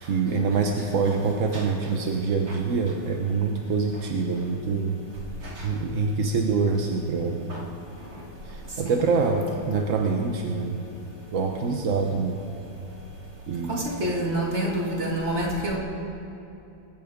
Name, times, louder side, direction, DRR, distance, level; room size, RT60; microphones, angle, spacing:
voice 1, 0.0-5.0 5.6-7.4 8.4-10.8 11.3-12.4 13.5-13.8, right 4 dB, 55° right, 2 dB, 1.0 m, -25 dB
voice 2, 13.7-15.8, right 1 dB, 35° right, -2 dB, 2.5 m, -27 dB
23.0 x 9.2 x 5.2 m, 2.8 s
omnidirectional pair, 2.3 m